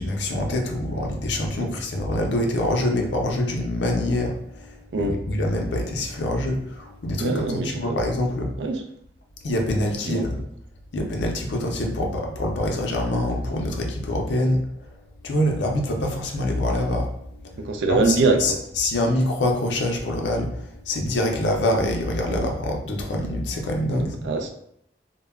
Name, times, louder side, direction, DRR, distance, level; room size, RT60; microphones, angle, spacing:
voice 1, 0.0-8.5 9.4-10.4 10.9-14.9 15.2-24.3, left 1 dB, 80° left, 2 dB, 0.5 m, -25 dB
voice 2, 7.2-8.0 8.6-8.8 10.0-10.2 17.6-18.6 22.3-22.5 23.9-24.5, right 3 dB, 85° right, 5 dB, 0.4 m, -24 dB
2.1 x 2.0 x 3.4 m, 0.74 s
head